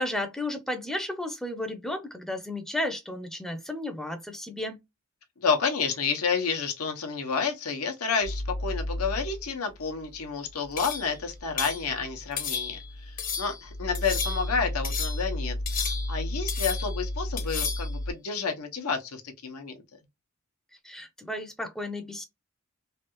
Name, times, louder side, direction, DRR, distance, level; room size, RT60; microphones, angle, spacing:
voice 1, 0.0-4.8 20.8-22.2, left 1 dB, ahead, 0.5 m, -33 dB
voice 2, 5.4-12.8 13.1-19.8, left 5 dB, 90° left, 0.8 m, -30 dB
sound 1, 8.2-18.1, left 1 dB, 75° right, 0.7 m, -34 dB
sound 2, 10.8-11.2 11.6-11.9 12.4-12.9 13.2-13.6 13.9-14.6 14.8-15.3 15.7-16.2 16.5-17.0 17.4-17.9, left 6 dB, 40° left, 0.7 m, -33 dB
3.2 x 2.3 x 3.0 m
head